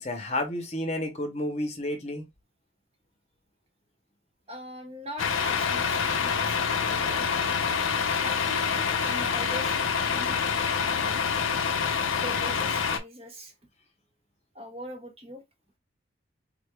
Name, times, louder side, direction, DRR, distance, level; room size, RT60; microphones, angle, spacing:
voice 1, 0.0-2.3, left 1 dB, 35° left, 0.8 m, -31 dB
voice 2, 4.5-7.7 8.2-11.3 12.1-13.5 14.5-15.4, equal, 30° right, 0.8 m, -42 dB
Truck, 5.2-13.0, left 6 dB, 90° left, 0.6 m, -26 dB
3.7 x 3.4 x 2.3 m
head